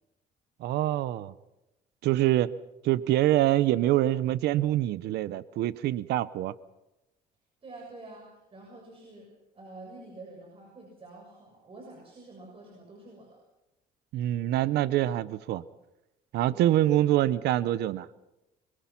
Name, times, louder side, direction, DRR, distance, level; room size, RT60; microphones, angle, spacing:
voice 1, 0.6-1.3 2.0-2.5 2.8-6.5 14.1-15.6 16.3-18.1, right 14 dB, 75° right, 17 dB, 0.8 m, -25 dB
voice 2, 7.6-9.3 9.5-13.4 16.5-16.7, right 2 dB, 35° right, 0 dB, 7.0 m, -48 dB
26.5 x 23.0 x 5.9 m, 0.96 s
cardioid pair, 110°, 17 cm